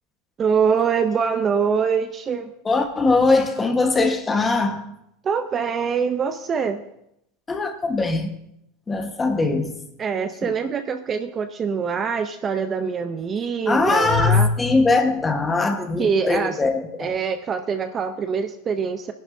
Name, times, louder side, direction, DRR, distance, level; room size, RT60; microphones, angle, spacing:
voice 1, 0.4-2.5 5.2-6.8 10.0-14.5 16.0-16.6 17.0-19.1, right 6 dB, 25° right, 0.5 m, -24 dB
voice 2, 2.6-4.8 7.5-8.3 8.9-9.8 10.4-10.5 13.7-17.1, left 3 dB, 15° left, 1.2 m, -21 dB
20.0 x 11.0 x 2.6 m
supercardioid pair, 145°, 0 cm